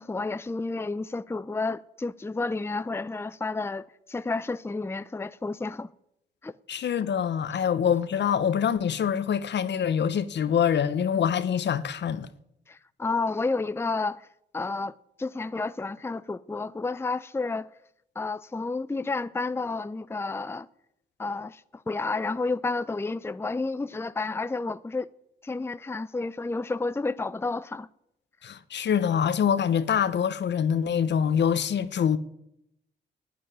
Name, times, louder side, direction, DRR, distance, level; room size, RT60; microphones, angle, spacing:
voice 1, 0.0-5.9 6.4-6.6 12.7-14.3 14.5-17.7 18.2-20.7 21.2-25.1 25.4-27.9, left 3 dB, 15° left, 0.5 m, -31 dB
voice 2, 6.7-12.3 28.4-32.2, left 8 dB, 70° left, 1.0 m, -25 dB
12.5 x 9.0 x 9.8 m
cardioid pair, 65°, 19 cm